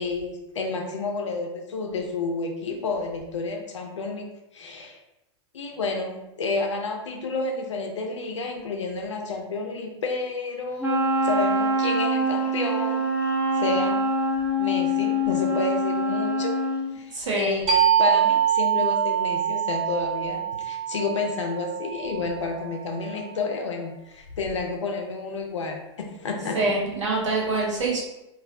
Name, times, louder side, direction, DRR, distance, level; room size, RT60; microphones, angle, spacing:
voice 1, 0.0-4.3 4.5-5.0 5.5-13.0 13.5-14.0 14.6-16.6 16.9-26.6, left 3 dB, 85° left, 2 dB, 0.5 m, -30 dB
Wind instrument woodwind instrument, 10.8-16.9, equal, 10° right, 0.6 m, -24 dB
voice 2, 17.1-17.6 26.5-28.0, right 3 dB, 85° right, -3 dB, 0.8 m, -25 dB
sound 1, 17.7-23.0, right 10 dB, 45° right, 0.7 m, -24 dB
2.3 x 2.1 x 2.6 m, 0.93 s
hypercardioid pair, 100°, 15 cm